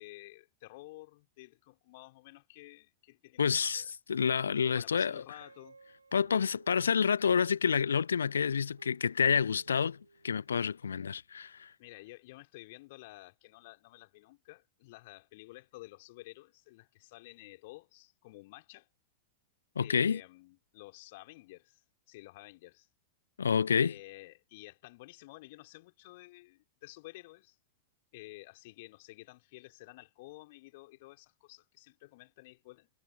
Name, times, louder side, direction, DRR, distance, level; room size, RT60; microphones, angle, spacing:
voice 1, 0.0-3.9 4.6-5.8 11.8-18.9 19.8-22.9 23.7-27.6 28.1-32.9, left 21 dB, 50° left, 4.1 m, -52 dB
voice 2, 3.4-5.2 6.1-10.0 10.2-11.7 19.8-20.2 23.4-23.9, left 6 dB, 70° left, 0.3 m, -28 dB
Guitar, 5.4-7.9 8.6-10.5, right 4 dB, 80° right, 4.0 m, -59 dB
figure-of-eight pair, 90°, 0 cm